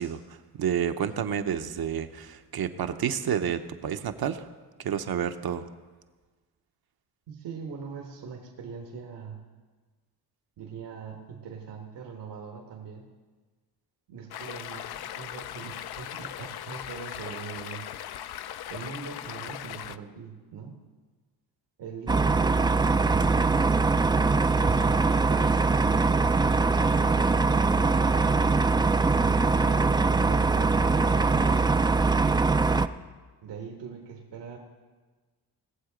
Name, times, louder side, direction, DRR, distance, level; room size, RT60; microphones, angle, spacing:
voice 1, 0.0-4.5 4.8-5.7, right 8 dB, 60° right, 8 dB, 0.9 m, -30 dB
voice 2, 7.3-9.4 10.6-13.0 14.1-17.9 18.7-20.8 21.8-23.7 27.0-28.4 29.1-32.3 33.4-34.6, right 6 dB, 80° right, 1 dB, 1.6 m, -41 dB
Stream, 14.3-20.0, left 11 dB, 65° left, 0.6 m, -39 dB
sound 1, 22.1-32.9, right 4 dB, 10° right, 0.3 m, -22 dB
20.0 x 7.4 x 5.1 m, 1.4 s
cardioid pair, 80°, 41 cm